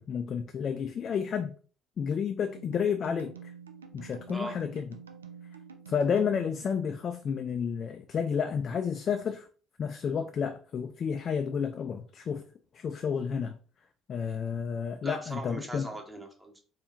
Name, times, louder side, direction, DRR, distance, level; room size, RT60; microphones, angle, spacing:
voice 1, 0.0-1.5 2.0-3.3 3.9-4.8 5.9-9.5 9.8-12.4 12.7-13.6 14.1-15.9, left 7 dB, 45° left, 0.3 m, -31 dB
sound 1, 2.5-7.4, right 7 dB, 80° right, 0.3 m, -48 dB
voice 2, 15.0-16.6, right 1 dB, 15° right, 1.1 m, -39 dB
4.3 x 3.2 x 2.5 m
figure-of-eight pair, 55°, 0 cm